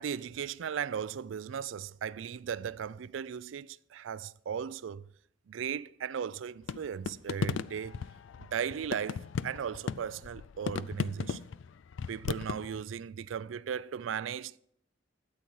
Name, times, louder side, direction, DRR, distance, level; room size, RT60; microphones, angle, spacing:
voice 1, 0.0-5.1 5.5-8.0 8.4-11.4 12.1-14.6, right 7 dB, 80° right, 0.4 m, -37 dB
sound 1, 6.7-12.8, left 6 dB, 70° left, 0.4 m, -36 dB
13.0 x 8.5 x 4.7 m
head